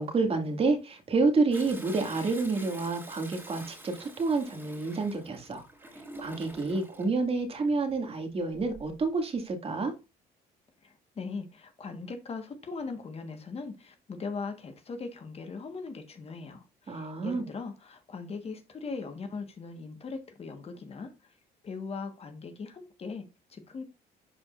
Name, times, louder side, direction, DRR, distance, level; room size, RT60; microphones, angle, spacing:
voice 1, 0.0-5.6 6.2-9.9 16.9-17.4, right 3 dB, 35° right, 2.2 m, -29 dB
Toilet flush, 1.5-7.1 8.5-9.0 9.5-9.6, right 1 dB, 10° right, 2.9 m, -47 dB
voice 2, 10.8-21.4 21.6-23.8, left 4 dB, 35° left, 1.5 m, -40 dB
11.5 x 4.8 x 2.5 m
cardioid pair, 110°, 17 cm